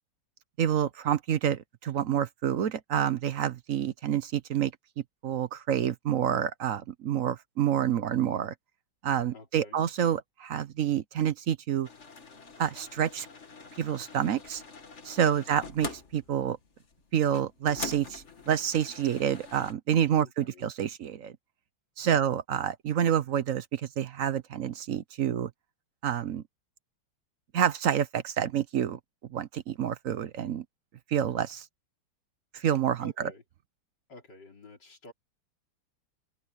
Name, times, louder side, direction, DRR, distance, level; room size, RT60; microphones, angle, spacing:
voice 1, 0.6-4.7 5.2-8.5 9.0-11.9 12.6-13.3 13.8-14.6 15.0-16.6 17.1-21.3 22.0-25.5 26.0-26.4 27.5-29.0 29.3-30.6 31.1-31.6 32.5-33.3, right 9 dB, 60° right, 0.9 m, -28 dB
voice 2, 9.3-9.9 15.2-15.6 20.2-20.7 22.0-22.3 33.0-33.4 34.1-35.1, left 2 dB, 60° left, 4.3 m, -50 dB
sound 1, 11.8-19.7, left 4 dB, 40° left, 1.9 m, -44 dB
omnidirectional pair, 2.1 m